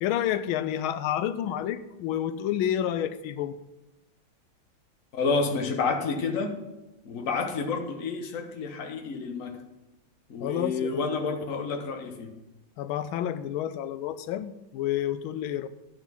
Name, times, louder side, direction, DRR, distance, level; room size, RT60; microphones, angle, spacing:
voice 1, 0.0-3.5 10.4-11.0 12.8-15.7, left 11 dB, 85° left, 13 dB, 1.4 m, -29 dB
voice 2, 5.1-6.5 7.0-9.6 10.3-12.3, left 4 dB, 45° left, 4 dB, 1.3 m, -29 dB
11.5 x 5.9 x 5.7 m, 1.0 s
omnidirectional pair, 2.2 m